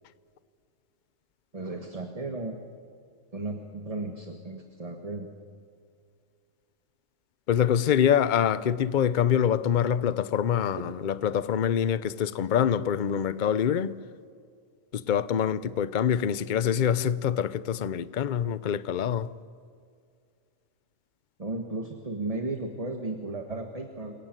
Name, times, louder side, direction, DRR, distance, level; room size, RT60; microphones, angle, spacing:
voice 1, 1.5-2.6 3.3-5.3 10.8-10.9 21.4-24.1, right 2 dB, 25° right, 1.6 m, -35 dB
voice 2, 7.5-14.0 14.9-19.3, left 9 dB, 45° left, 0.7 m, -25 dB
28.5 x 17.5 x 9.1 m
omnidirectional pair, 1.4 m